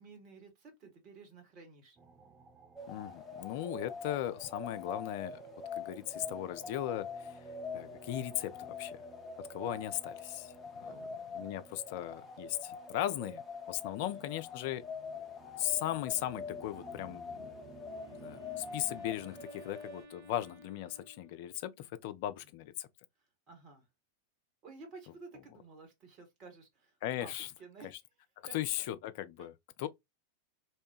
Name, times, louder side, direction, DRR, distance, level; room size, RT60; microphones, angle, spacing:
voice 1, 0.0-2.0 10.8-11.1 14.0-14.3 23.2-23.9 24.6-27.9 28.5-28.9 29.4-29.5 29.8-29.9, right 4 dB, 35° right, 1.2 m, -53 dB
sound 1, 2.0-19.5, right 5 dB, 20° right, 0.5 m, -58 dB
sound 2, 2.8-20.1, left 5 dB, 15° left, 0.7 m, -45 dB
voice 2, 2.9-5.4 5.8-7.4 7.7-9.0 9.4-11.0 11.3-13.4 13.7-14.9 15.6-17.4 18.1-22.9 27.0-27.5 28.5-29.5 29.8-29.9, left 13 dB, 50° left, 0.3 m, -37 dB
Wind instrument woodwind instrument, 17.3-21.8, equal, 65° right, 1.8 m, -57 dB
2.9 x 2.2 x 2.8 m
figure-of-eight pair, 90°, 0 cm